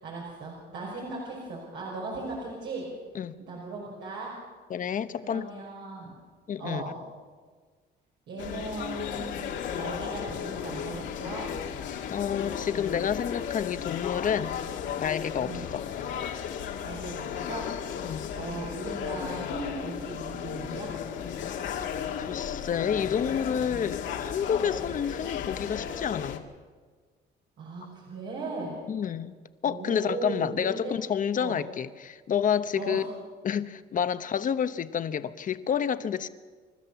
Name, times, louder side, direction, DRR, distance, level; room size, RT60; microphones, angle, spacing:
voice 1, 0.0-2.9 3.4-4.3 5.2-6.2 6.6-7.0 8.3-11.5 15.4-15.7 16.8-17.7 18.3-20.9 27.6-28.8 29.6-30.9 31.4-31.6 32.8-33.0, right 3 dB, 80° right, 5.6 m, -37 dB
voice 2, 4.7-5.5 6.5-6.8 12.1-14.6 15.0-15.8 18.0-18.3 22.2-26.4 28.9-29.4 29.6-33.0 33.4-36.3, left 8 dB, 45° left, 1.0 m, -29 dB
sound 1, 8.4-26.4, left 8 dB, 80° left, 2.1 m, -35 dB
29.5 x 13.0 x 7.0 m
cardioid pair, 110°, 19 cm